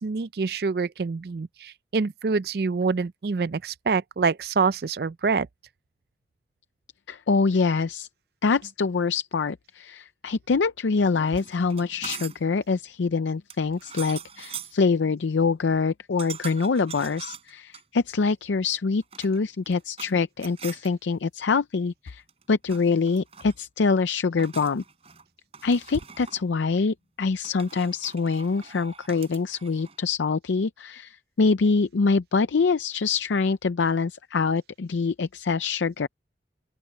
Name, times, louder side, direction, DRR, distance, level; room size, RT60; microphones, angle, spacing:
voice 1, 0.0-5.5, right 4 dB, 60° right, 0.4 m, -26 dB
voice 2, 7.1-8.1 8.4-22.2 22.5-24.8 25.6-36.1, left 4 dB, 85° left, 0.5 m, -25 dB
sound 1, 11.3-12.5 13.5-14.8 16.2-17.8 18.9-20.1 20.4-20.9 22.1-22.4 22.7-23.6 24.4-25.2 25.5-26.5 27.4-30.0, right 7 dB, 35° right, 4.8 m, -42 dB
open air
head